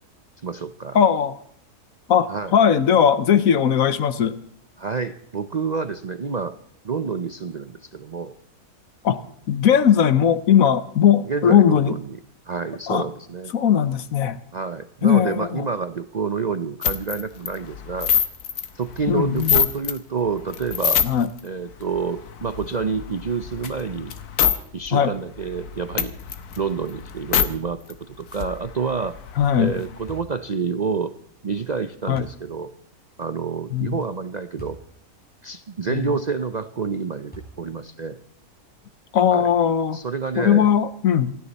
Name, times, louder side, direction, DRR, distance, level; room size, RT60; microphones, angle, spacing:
voice 1, 0.4-1.0 2.3-2.5 4.8-6.5 6.8-8.3 11.3-12.0 12.5-13.5 14.5-18.1 18.7-21.0 21.4-24.1 24.7-26.1 26.6-27.8 28.1-29.1 29.6-31.1 31.4-32.7 33.2-34.8 35.4-37.3 37.6-38.2 39.3-39.5 39.9-40.7, right 5 dB, 50° right, 11 dB, 0.5 m, -28 dB
voice 2, 0.9-1.4 2.1-4.4 9.0-9.2 9.5-11.9 12.9-13.1 13.5-14.4 15.0-15.7 19.1-19.6 21.0-21.3 24.9-25.1 29.4-29.8 32.1-32.3 33.7-34.0 35.9-36.1 39.1-40.0 40.4-41.4, left 8 dB, 65° left, 14 dB, 1.3 m, -19 dB
sound 1, 16.8-20.0 20.4-21.4 21.8-24.6 24.9-25.0 25.3-27.5 27.9-28.0 28.2-30.2, left 8 dB, 85° left, 1.6 m, -26 dB
sound 2, 30.1-30.4 32.1-32.4 34.6-34.9 35.5-35.6 37.3-37.8, right 1 dB, 5° left, 5.5 m, -41 dB
28.0 x 10.0 x 4.1 m, 0.65 s
omnidirectional pair, 1.6 m